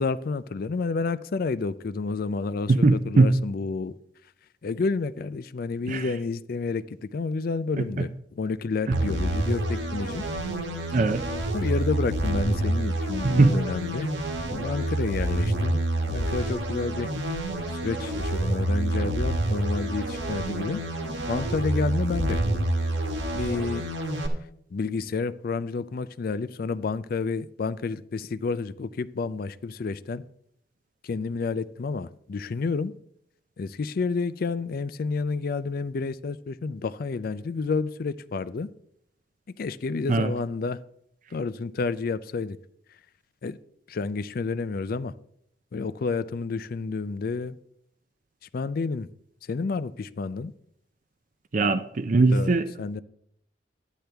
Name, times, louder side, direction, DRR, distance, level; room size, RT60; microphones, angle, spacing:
voice 1, 0.0-3.9 4.6-10.2 11.5-14.1 14.5-15.8 16.1-17.1 17.7-20.8 21.3-22.4 23.3-23.9 24.7-30.2 31.0-32.9 33.6-38.7 39.6-40.8 41.3-42.6 43.4-43.6 43.9-45.1 45.7-47.6 48.5-49.1 49.5-50.5 52.3-52.5 52.8-53.0, left 4 dB, 50° left, 0.4 m, -30 dB
voice 2, 2.7-3.4 5.9-6.0 8.9-9.0 10.9-11.2 13.2-13.6 40.1-40.3 51.5-52.7, right 3 dB, 45° right, 0.5 m, -20 dB
sound 1, 8.9-24.3, right 1 dB, 75° right, 1.4 m, -28 dB
12.0 x 9.2 x 3.4 m
head